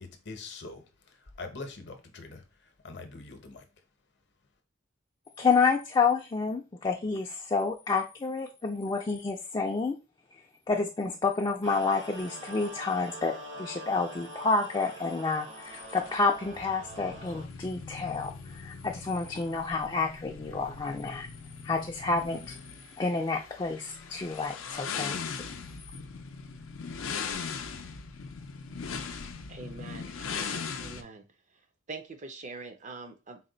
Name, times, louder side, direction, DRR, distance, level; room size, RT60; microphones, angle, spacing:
voice 1, 0.0-2.4 2.8-3.6, left 3 dB, 60° left, 0.7 m, -43 dB
voice 2, 5.4-10.0 10.7-21.3 21.6-22.6 23.0-25.4, left 4 dB, 20° left, 0.3 m, -29 dB
sound 1, 11.6-17.5, right 1 dB, 65° right, 1.0 m, -44 dB
sound 2, 15.7-31.0, left 5 dB, 90° left, 0.5 m, -40 dB
voice 3, 29.5-31.2 31.9-33.4, right 3 dB, 40° right, 0.5 m, -44 dB
4.1 x 2.2 x 3.8 m
head